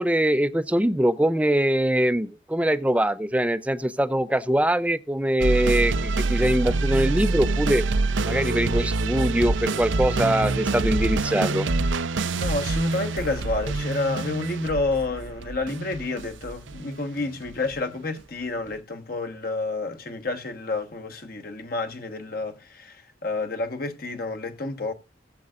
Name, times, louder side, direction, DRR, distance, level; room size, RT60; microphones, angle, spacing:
voice 1, 0.0-7.8 8.2-11.7, right 1 dB, 5° right, 0.5 m, -23 dB
sound 1, 5.4-17.8, right 3 dB, 85° right, 0.6 m, -26 dB
voice 2, 12.4-24.9, left 3 dB, 50° left, 1.3 m, -29 dB
19.5 x 7.7 x 2.5 m
head